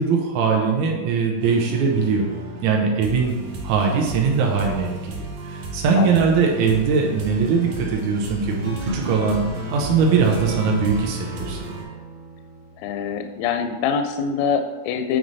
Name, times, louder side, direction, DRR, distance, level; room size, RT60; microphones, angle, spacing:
voice 1, 0.0-2.2 2.6-3.3 3.6-4.9 5.4-9.4 9.7-11.6, right 5 dB, 90° right, 0 dB, 1.6 m, -21 dB
sound 1, 1.4-11.8, right 1 dB, 70° right, 2.7 m, -34 dB
sound 2, 8.4-13.3, right 1 dB, 55° right, 1.7 m, -33 dB
voice 2, 12.8-15.2, left 6 dB, 85° left, 7 dB, 2.1 m, -24 dB
8.8 x 3.2 x 4.0 m, 1.4 s
omnidirectional pair, 4.4 m